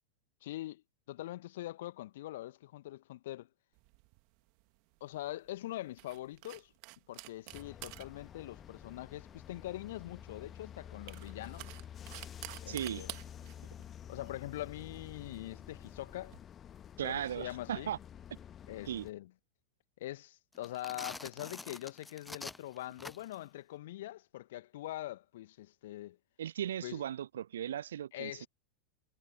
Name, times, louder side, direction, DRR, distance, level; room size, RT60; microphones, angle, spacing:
voice 1, 0.4-3.5 5.0-6.7 7.1-11.8 12.6-13.1 14.1-16.3 17.0-17.9 18.7-19.3 20.0-26.2 26.8-27.0 28.1-28.5, left 15 dB, 55° left, 1.7 m, -43 dB
sound 1, 3.8-16.4, right 38 dB, 45° right, 2.7 m, -52 dB
sound 2, 7.5-19.1, left 9 dB, 25° left, 1.6 m, -50 dB
voice 2, 12.7-13.1 17.0-18.0 18.9-19.1 26.4-28.5, right 10 dB, 65° right, 0.7 m, -37 dB
sound 3, 20.5-23.5, left 2 dB, 10° left, 0.5 m, -46 dB
figure-of-eight pair, 90°, 0 cm